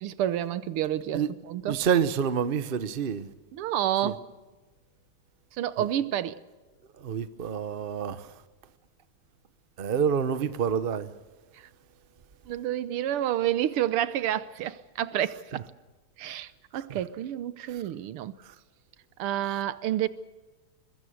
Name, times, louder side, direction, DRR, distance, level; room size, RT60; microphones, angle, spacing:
voice 1, 0.0-1.8 3.5-4.2 5.6-6.4 12.5-15.7 16.2-18.3 19.2-20.1, right 11 dB, 85° right, 1.8 m, -29 dB
voice 2, 1.7-3.3 4.0-4.1 5.8-5.9 7.0-8.4 9.8-11.1 16.9-17.0 17.7-17.8 18.4-18.5, right 7 dB, 50° right, 0.6 m, -28 dB
22.0 x 21.5 x 6.5 m
omnidirectional pair, 2.4 m